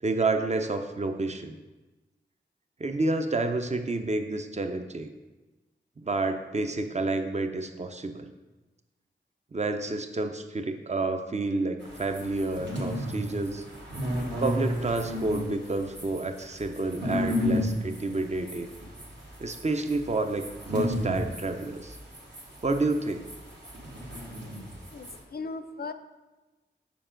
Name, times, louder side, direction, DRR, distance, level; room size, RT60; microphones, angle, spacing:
voice 1, 0.0-1.6 2.8-5.1 6.0-8.3 9.5-13.7 14.4-18.7 19.4-22.0 22.6-23.3, right 2 dB, 35° right, 7 dB, 0.6 m, -29 dB
sound 1, 11.8-25.2, left 1 dB, 65° right, 1.6 m, -33 dB
voice 2, 24.8-25.9, left 4 dB, 50° left, 9 dB, 0.5 m, -38 dB
6.8 x 5.0 x 3.8 m, 1.2 s
wide cardioid pair, 50°, 20 cm